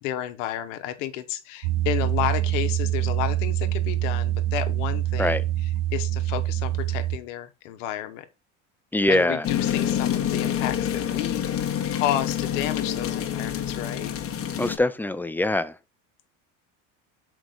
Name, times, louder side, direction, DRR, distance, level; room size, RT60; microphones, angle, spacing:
voice 1, 0.0-8.3 9.1-11.5 11.9-14.1, left 12 dB, 80° left, 1.0 m, -31 dB
sound 1, 1.6-7.2, right 13 dB, 80° right, 0.6 m, -25 dB
voice 2, 8.9-9.4 14.6-15.7, left 1 dB, 5° left, 0.3 m, -23 dB
sound 2, 9.4-14.8, left 10 dB, 35° left, 1.2 m, -27 dB
6.1 x 4.6 x 3.9 m
supercardioid pair, 95°, 37 cm